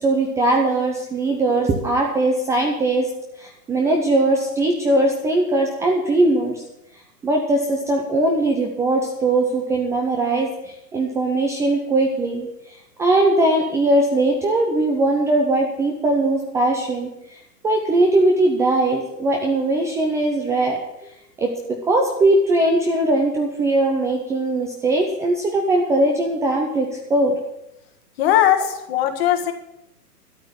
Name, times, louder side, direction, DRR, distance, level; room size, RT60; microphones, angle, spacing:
voice 1, 0.0-3.1 3.4-6.6 7.2-17.4 17.6-20.8 21.4-27.4, right 2 dB, 5° right, 0 dB, 0.6 m, -20 dB
voice 2, 28.2-29.5, left 12 dB, 40° left, 7 dB, 1.7 m, -19 dB
12.5 x 6.6 x 9.7 m, 0.83 s
hypercardioid pair, 135°, 48 cm